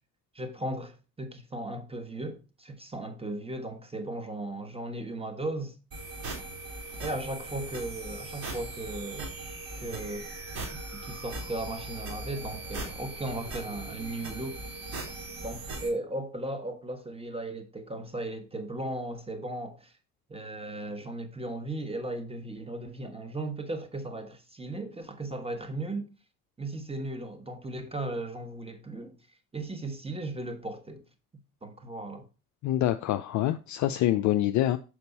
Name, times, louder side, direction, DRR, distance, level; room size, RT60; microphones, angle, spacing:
voice 1, 0.3-5.8 7.0-9.5 9.8-10.3 10.7-14.7 15.4-19.9 20.3-26.1 26.6-29.2 29.5-31.0 31.6-32.2, right 2 dB, 10° right, 1.3 m, -36 dB
sound 1, 5.9-15.9, right 2 dB, 50° right, 3.0 m, -39 dB
voice 2, 32.6-34.8, left 13 dB, 40° left, 0.4 m, -26 dB
6.7 x 4.9 x 4.1 m
figure-of-eight pair, 50°, 46 cm